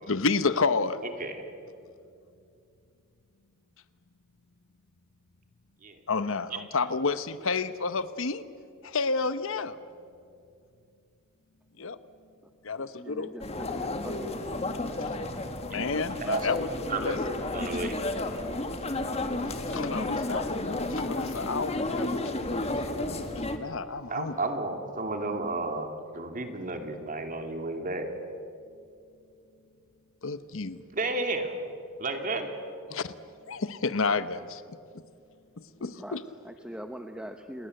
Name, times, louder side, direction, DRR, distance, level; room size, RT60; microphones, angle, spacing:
voice 1, 0.1-1.0 6.1-8.4 8.8-9.8 11.8-12.0 12.6-13.3 15.0-15.2 15.7-16.7 17.0-17.2 19.5-24.3 30.2-30.8 32.9-33.1 33.5-35.0 35.6-36.2, left 4 dB, 65° left, 14 dB, 0.9 m, -31 dB
voice 2, 1.0-1.4 5.8-6.0 15.7-16.5 16.9-18.0 24.1-28.1 30.9-31.6 32.0-32.7, right 2 dB, 40° right, 5 dB, 2.6 m, -33 dB
voice 3, 12.8-14.6 35.8-37.7, equal, 5° right, 6 dB, 0.8 m, -43 dB
sound 1, 13.4-23.6, left 2 dB, 30° left, 1.8 m, -32 dB
28.5 x 20.5 x 7.8 m, 2.4 s
head